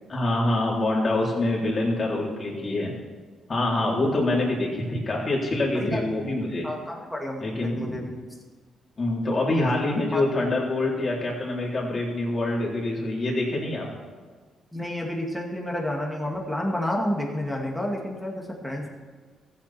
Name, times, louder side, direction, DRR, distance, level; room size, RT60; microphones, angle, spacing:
voice 1, 0.1-2.9 3.5-6.7 7.4-8.0 9.0-13.9, left 2 dB, 35° left, -4 dB, 3.9 m, -25 dB
voice 2, 3.8-4.2 5.7-6.0 6.6-8.2 10.1-10.2 14.7-18.9, left 1 dB, 5° left, -1 dB, 2.4 m, -30 dB
15.0 x 8.5 x 4.5 m, 1.5 s
cardioid pair, 90°, 0 cm